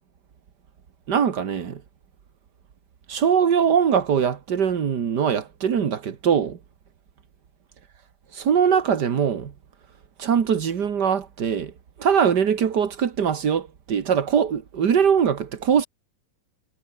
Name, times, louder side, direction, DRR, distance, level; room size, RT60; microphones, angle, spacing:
voice 1, 1.1-1.8 3.1-6.6 8.3-9.5 10.2-11.7 12.0-15.8, right 7 dB, 50° right, 1.2 m, -22 dB
omnidirectional pair, 4.1 m